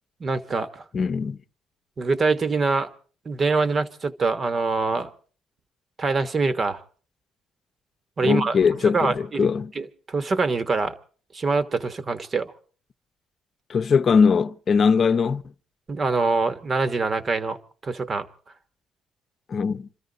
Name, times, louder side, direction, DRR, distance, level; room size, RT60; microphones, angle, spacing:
voice 1, 0.2-0.8 2.0-2.9 3.2-5.1 6.0-6.8 8.2-8.6 8.9-9.5 9.7-10.9 11.3-12.5 15.9-17.6 17.8-18.3, right 4 dB, 40° right, 1.3 m, -24 dB
voice 2, 0.9-1.4 8.2-9.7 13.7-15.4 19.5-19.9, left 5 dB, 45° left, 0.8 m, -21 dB
27.0 x 13.5 x 3.9 m
supercardioid pair, 70°, 0 cm